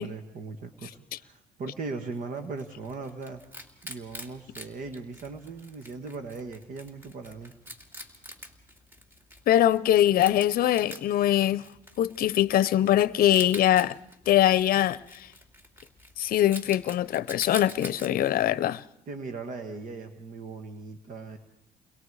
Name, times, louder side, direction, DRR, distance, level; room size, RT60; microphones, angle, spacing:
voice 1, 0.0-3.4 3.8-7.5 19.1-21.4, right 4 dB, 55° right, 1.7 m, -38 dB
Wild animals, 2.1-18.1, equal, 15° right, 2.6 m, -46 dB
voice 2, 9.5-11.7 12.0-14.0 14.3-15.3 16.2-18.8, left 12 dB, 60° left, 0.7 m, -22 dB
30.0 x 22.0 x 4.9 m
cardioid pair, 110°, 17 cm